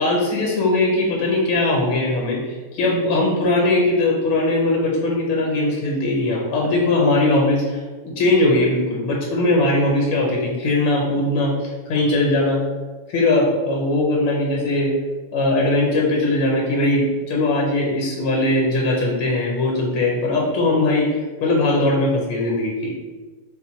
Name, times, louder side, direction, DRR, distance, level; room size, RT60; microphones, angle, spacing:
voice 1, 0.0-12.6 13.1-14.9 15.3-22.9, left 2 dB, 75° left, -1 dB, 1.6 m, -20 dB
4.3 x 2.2 x 4.2 m, 1.3 s
omnidirectional pair, 2.3 m